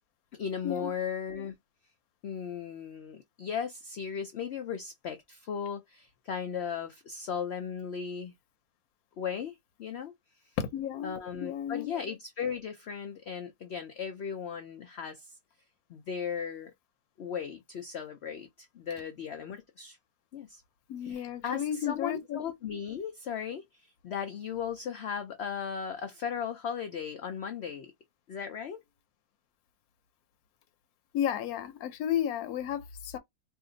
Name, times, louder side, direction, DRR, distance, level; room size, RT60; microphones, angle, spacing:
voice 1, 0.3-1.5 2.2-8.3 9.2-10.1 11.0-15.4 15.9-16.7 17.2-20.0 20.3-20.6 21.0-27.9 28.3-28.8, left 7 dB, 90° left, 0.5 m, -37 dB
voice 2, 10.7-11.1 11.4-11.9 20.9-22.4 31.1-33.2, left 10 dB, 70° left, 1.1 m, -33 dB
2.6 x 2.5 x 3.8 m
omnidirectional pair, 1.7 m